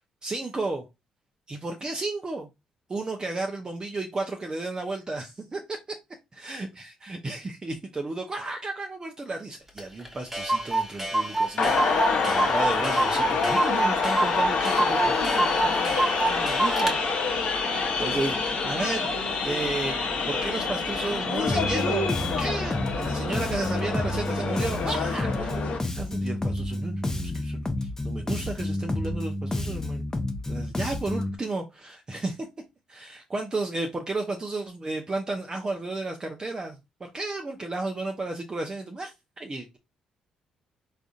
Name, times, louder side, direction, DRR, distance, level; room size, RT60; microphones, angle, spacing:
voice 1, 0.2-0.9 1.5-2.5 2.9-5.8 6.4-15.9 16.2-17.0 17.7-25.6 25.9-27.6 28.0-30.0 30.5-32.5 32.9-39.8, right 2 dB, 30° right, 3 dB, 0.6 m, -33 dB
Clock, 9.8-9.9 10.0-10.1 10.3-17.0, right 2 dB, 10° right, 1.2 m, -27 dB
sound 1, 11.6-25.8, left 4 dB, 60° left, 0.9 m, -27 dB
Bass guitar, 21.5-31.4, left 1 dB, 20° left, 0.7 m, -30 dB
3.6 x 2.5 x 2.4 m, 0.23 s
hypercardioid pair, 50°, 3 cm